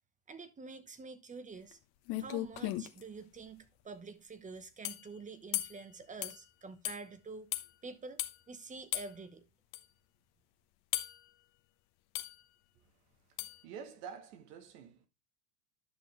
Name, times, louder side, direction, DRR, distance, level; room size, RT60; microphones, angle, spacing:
voice 1, 0.3-1.8 2.2-7.5 7.8-8.2 8.5-9.4, right 4 dB, 15° right, 1.0 m, -47 dB
sound 1, 1.7-1.8 2.1-3.0 4.8-5.1 5.5-5.8 6.2-6.4 6.8-7.0 7.5-7.7 8.2-8.4 8.9-9.1 9.7-9.8 10.9-11.2 12.1-12.4 13.4-13.6, left 16 dB, 50° left, 1.1 m, -36 dB
voice 2, 13.5-15.1, right 7 dB, 70° right, 1.8 m, -48 dB
11.0 x 6.1 x 3.4 m
supercardioid pair, 125°, 47 cm